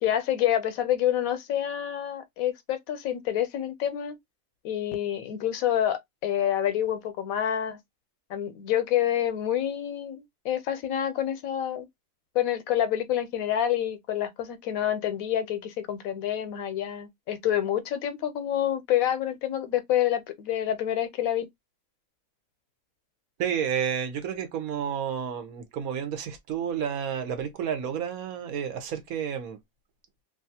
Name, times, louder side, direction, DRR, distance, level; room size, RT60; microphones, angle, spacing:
voice 1, 0.0-4.2 4.6-7.8 8.3-11.9 12.3-21.5, left 11 dB, 80° left, 1.0 m, -27 dB
voice 2, 23.4-29.6, right 8 dB, 85° right, 1.2 m, -30 dB
2.8 x 2.4 x 2.6 m
omnidirectional pair, 1.5 m